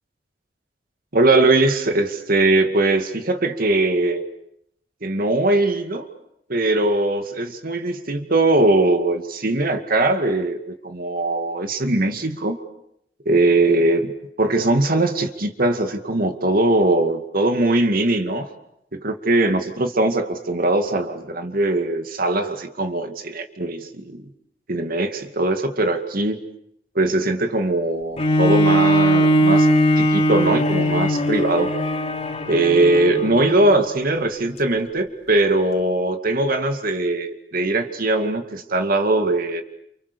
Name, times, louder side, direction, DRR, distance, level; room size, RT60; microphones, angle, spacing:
voice 1, 1.1-4.2 5.0-6.1 6.5-12.6 13.3-18.5 18.9-24.2 24.7-26.4 26.9-29.7 30.0-31.7 32.5-39.6, right 2 dB, 55° right, 7 dB, 2.2 m, -20 dB
Bowed string instrument, 28.2-33.8 34.4-34.5, equal, 35° left, 3.1 m, -19 dB
29.5 x 29.0 x 6.9 m, 0.74 s
head